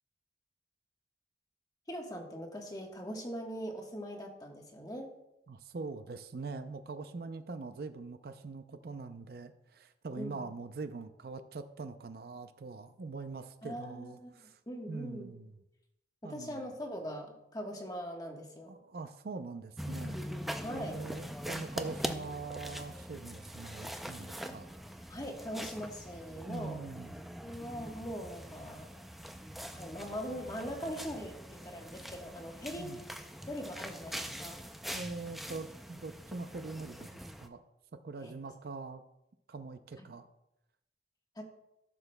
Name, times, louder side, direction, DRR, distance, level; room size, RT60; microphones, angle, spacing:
voice 1, 1.9-5.1 10.2-10.5 13.6-14.3 14.7-15.3 16.2-18.7 20.6-21.0 25.1-26.8 27.4-29.0 29.7-33.1 33.5-34.6 38.2-38.3 40.0-40.1 41.4-41.5, equal, 20° left, 2 dB, 1.2 m, -41 dB
voice 2, 5.5-14.6 14.9-15.6 16.2-16.6 18.7-20.4 20.7-24.7 26.5-27.1 32.8-33.0 34.9-37.6 37.9-39.0 39.5-40.3, right 3 dB, 60° right, 9 dB, 0.5 m, -43 dB
sound 1, 19.8-37.5, equal, ahead, 0.4 m, -43 dB
14.5 x 6.9 x 2.2 m, 0.88 s
head